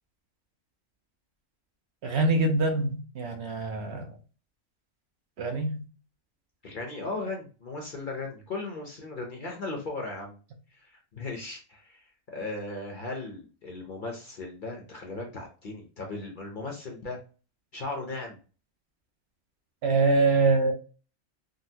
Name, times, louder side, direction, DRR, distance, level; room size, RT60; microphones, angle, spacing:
voice 1, 2.0-4.1 5.4-5.8 19.8-20.7, right 3 dB, 65° right, 0.8 m, -24 dB
voice 2, 6.6-10.4 10.7-17.2 17.7-18.4, left 3 dB, 50° left, 0.7 m, -37 dB
3.9 x 2.0 x 2.6 m
omnidirectional pair, 1.4 m